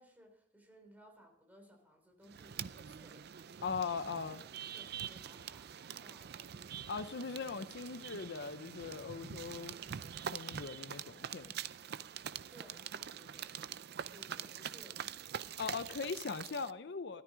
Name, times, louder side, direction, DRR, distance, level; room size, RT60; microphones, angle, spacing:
voice 1, 0.0-3.7 4.7-6.7 12.5-13.6 14.1-15.4, equal, 10° right, 3 dB, 3.4 m, -61 dB
sound 1, 2.3-16.7, right 8 dB, 60° right, 0.5 m, -45 dB
voice 2, 3.6-4.4 6.9-9.8 10.3-11.5 15.6-17.2, left 5 dB, 65° left, 12 dB, 0.6 m, -40 dB
13.5 x 13.0 x 5.0 m, 0.78 s
head